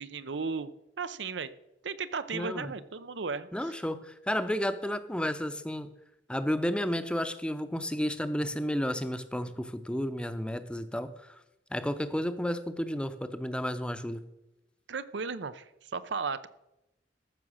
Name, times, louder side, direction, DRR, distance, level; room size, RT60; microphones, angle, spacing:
voice 1, 0.0-1.5 1.8-3.8 14.9-16.5, right 5 dB, 80° right, 14 dB, 0.7 m, -35 dB
voice 2, 2.3-2.7 3.5-5.9 6.3-11.3 11.7-14.2, equal, 5° left, 11 dB, 0.7 m, -32 dB
14.0 x 6.1 x 6.4 m, 0.91 s
head